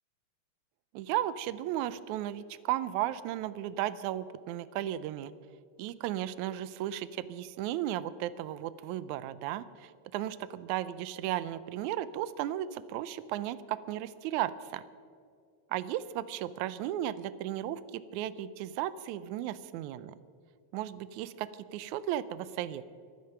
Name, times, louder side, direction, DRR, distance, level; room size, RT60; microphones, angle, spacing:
voice 1, 0.9-5.3 5.8-14.8 15.7-20.2 20.7-22.9, right 12 dB, 80° right, 16 dB, 2.0 m, -35 dB
23.0 x 9.5 x 5.8 m, 2.3 s
omnidirectional pair, 3.4 m